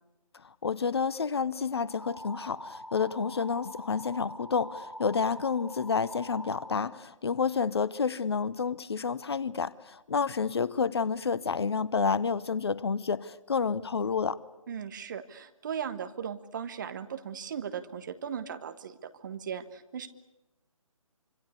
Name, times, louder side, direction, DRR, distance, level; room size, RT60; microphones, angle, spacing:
voice 1, 0.3-14.4, left 5 dB, 45° left, 0.9 m, -29 dB
sound 1, 1.8-6.8, equal, 75° left, 5.9 m, -44 dB
voice 2, 14.7-20.1, right 8 dB, 35° right, 1.5 m, -37 dB
26.0 x 25.5 x 8.4 m
figure-of-eight pair, 145°, 18 cm